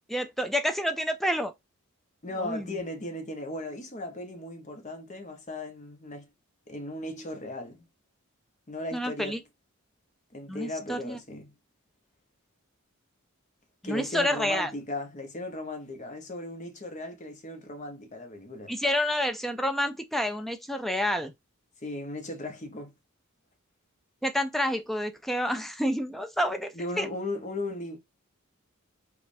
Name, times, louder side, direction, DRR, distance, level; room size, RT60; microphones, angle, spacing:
voice 1, 0.1-1.5 2.4-2.8 8.9-9.4 10.5-11.2 13.8-14.7 18.7-21.3 24.2-27.1, equal, ahead, 0.4 m, -29 dB
voice 2, 2.2-6.3 6.7-7.8 8.7-9.4 10.3-11.5 13.8-18.7 21.8-22.9 26.7-28.0, left 1 dB, 35° left, 0.8 m, -37 dB
5.1 x 2.4 x 2.6 m
head